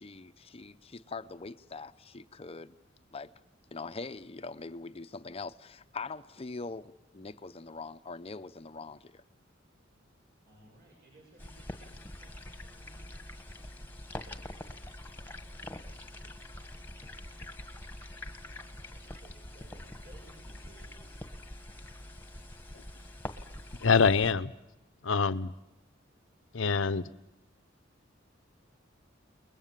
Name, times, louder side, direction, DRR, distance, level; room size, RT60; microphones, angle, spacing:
voice 1, 0.0-2.7 3.1-3.3 3.7-9.1, left 3 dB, 30° left, 0.8 m, -42 dB
voice 2, 10.5-13.1 18.7-21.1, right 1 dB, 50° right, 7.4 m, -59 dB
sound 1, 11.4-24.3, left 1 dB, 10° left, 1.6 m, -45 dB
voice 3, 23.8-24.5 25.0-25.5 26.5-27.0, left 5 dB, 80° left, 0.9 m, -25 dB
29.5 x 21.5 x 7.5 m
head